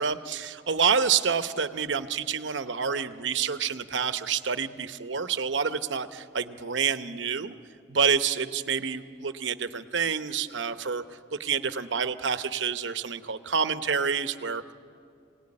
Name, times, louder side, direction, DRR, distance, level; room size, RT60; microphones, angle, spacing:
voice 1, 0.0-7.5 7.9-11.0 11.3-14.7, right 6 dB, 65° right, 11 dB, 0.9 m, -28 dB
25.0 x 18.0 x 9.8 m, 2.4 s
head